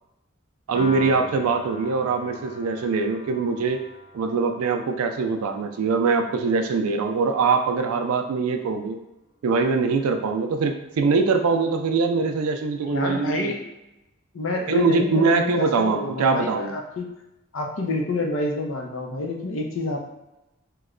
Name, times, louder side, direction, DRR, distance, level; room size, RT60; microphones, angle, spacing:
Piano, 0.7-7.1, left 2 dB, 25° left, 0.7 m, -42 dB
voice 1, 0.7-3.8 4.1-9.0 9.4-13.5 14.7-16.7, right 4 dB, 90° right, 6 dB, 0.4 m, -23 dB
voice 2, 12.8-13.6 14.3-17.1 17.5-20.0, left 2 dB, 70° left, 1 dB, 0.6 m, -28 dB
3.0 x 2.2 x 3.6 m, 0.95 s
head